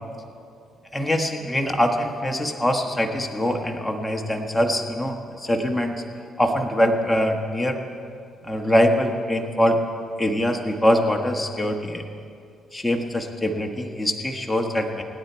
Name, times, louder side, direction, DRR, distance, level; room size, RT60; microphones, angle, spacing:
voice 1, 0.9-5.9 6.4-7.8 8.4-9.8 10.2-12.0 12.7-15.0, equal, 5° left, 3 dB, 1.3 m, -23 dB
26.0 x 9.7 x 4.5 m, 2.4 s
cardioid pair, 90°, 0 cm